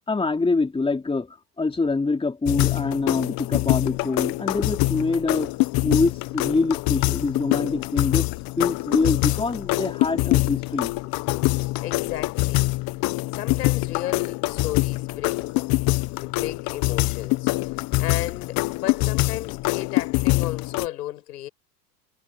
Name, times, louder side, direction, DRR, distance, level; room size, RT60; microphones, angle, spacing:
voice 1, 0.1-5.6 5.8-8.3 8.6-10.9, left 3 dB, 10° left, 3.3 m, -25 dB
sound 1, 2.5-20.9, left 23 dB, 50° left, 0.9 m, -24 dB
voice 2, 11.1-12.8 13.3-15.6 16.1-17.7 18.0-21.5, left 13 dB, 85° left, 6.4 m, -34 dB
hypercardioid pair, 105°, 46 cm